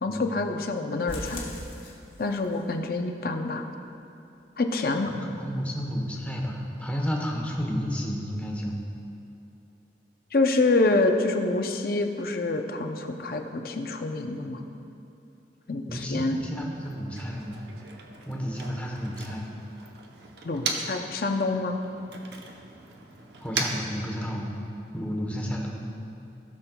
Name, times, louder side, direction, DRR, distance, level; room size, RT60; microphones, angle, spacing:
voice 1, 0.0-1.4 2.2-3.6 4.6-5.1 10.3-14.6 15.7-16.4 20.4-21.8, left 2 dB, 55° left, 5 dB, 0.6 m, -26 dB
sound 1, 1.1-2.6 2.9-3.0 3.4-3.5 3.9-4.0, left 1 dB, 30° left, 1.3 m, -39 dB
voice 2, 5.1-8.8 15.9-17.6 18.3-19.5 23.4-24.5 24.9-25.8, equal, 10° left, -2 dB, 1.0 m, -31 dB
Motor vehicle (road), 16.7-21.1 21.4-24.7, right 3 dB, 70° right, 0.8 m, -38 dB
17.5 x 6.2 x 2.3 m, 2.8 s
head